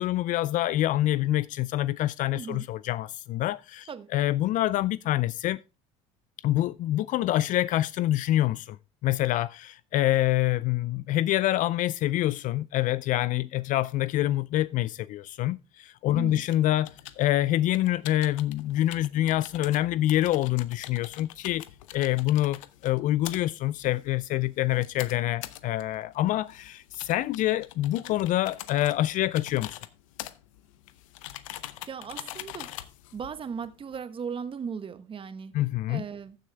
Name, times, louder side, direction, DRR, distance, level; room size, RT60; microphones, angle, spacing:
voice 1, 0.0-5.6 6.4-8.8 9.0-16.9 17.2-21.6 21.9-29.8 35.5-36.0, left 14 dB, 55° left, 0.4 m, -26 dB
voice 2, 2.3-2.7 3.9-4.1 16.1-16.4 31.9-32.7 33.1-35.5 35.9-36.4, right 6 dB, 35° right, 1.2 m, -37 dB
sound 1, 16.5-34.0, left 14 dB, 90° left, 0.7 m, -44 dB
14.5 x 6.4 x 3.4 m
supercardioid pair, 85°, 16 cm